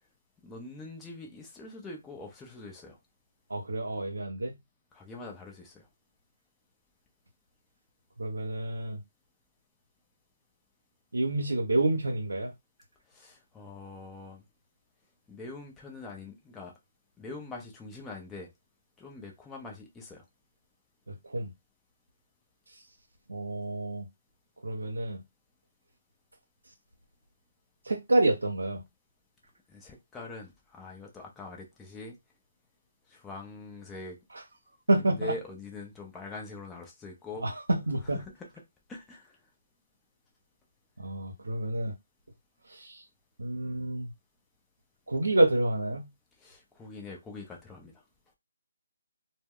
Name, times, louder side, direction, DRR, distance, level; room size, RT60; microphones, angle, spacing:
voice 1, 0.4-3.0 4.9-5.9 13.1-14.4 15.3-16.7 17.2-18.5 19.0-20.2 29.7-32.2 33.1-34.2 35.0-37.5 38.1-38.5 38.9-39.4 46.4-47.9, left 3 dB, 10° left, 0.7 m, -43 dB
voice 2, 3.5-4.5 8.2-9.0 11.1-12.5 21.3-21.5 23.3-24.1 24.6-25.2 27.8-28.8 34.9-35.3 37.4-38.2 41.0-41.9 42.7-43.0 43.4-44.1 45.1-46.1, right 2 dB, 90° right, 0.6 m, -28 dB
2.2 x 2.1 x 3.5 m
figure-of-eight pair, 155°, 0 cm